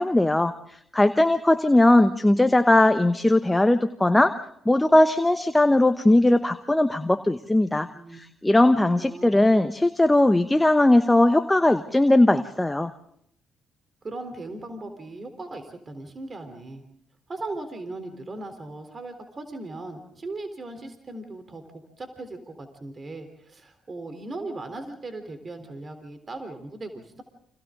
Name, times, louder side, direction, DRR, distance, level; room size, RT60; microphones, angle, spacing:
voice 1, 0.0-4.3 4.6-12.9, left 1 dB, 15° left, 10 dB, 1.1 m, -19 dB
voice 2, 9.0-9.4 14.0-16.8 17.3-27.2, right 2 dB, 40° right, 7 dB, 3.7 m, -38 dB
29.5 x 26.5 x 3.8 m, 0.71 s
hypercardioid pair, 45°, 0 cm